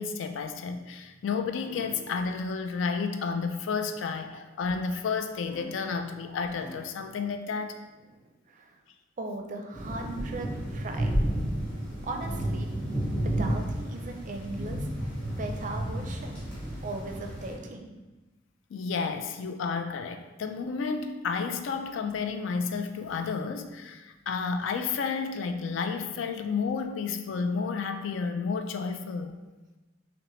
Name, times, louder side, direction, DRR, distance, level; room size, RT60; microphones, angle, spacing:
voice 1, 0.0-7.8 18.7-29.4, left 5 dB, 80° left, 7 dB, 0.3 m, -31 dB
sound 1, 0.7-1.2 1.6-2.2 5.5-6.1 6.5-7.1, equal, 25° left, 0.6 m, -46 dB
voice 2, 8.1-8.8 9.2-11.1 12.0-12.7 13.2-14.9 15.4-16.4 16.8-17.9, right 2 dB, 40° right, 3 dB, 0.4 m, -38 dB
sound 2, 9.7-17.5, right 1 dB, 5° left, 1.3 m, -31 dB
5.7 x 2.1 x 3.0 m, 1.1 s
head